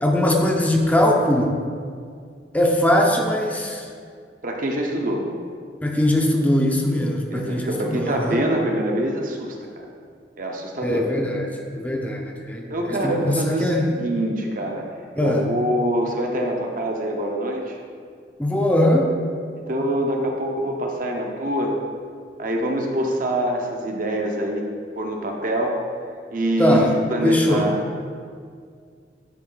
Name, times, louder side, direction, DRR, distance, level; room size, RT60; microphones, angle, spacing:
voice 1, 0.0-1.5 2.5-3.9 5.8-8.4 10.8-11.5 11.7-13.8 15.2-15.4 18.4-19.1 26.6-26.9 27.2-27.7, left 1 dB, 10° left, 0 dB, 0.5 m, -21 dB
voice 2, 4.4-5.2 7.3-9.8 10.4-11.1 12.7-14.8 15.2-17.8 19.7-21.7 22.4-24.7 25.0-25.8 26.3-27.8, right 1 dB, 50° right, 1 dB, 0.7 m, -25 dB
10.5 x 3.6 x 3.9 m, 2.1 s
head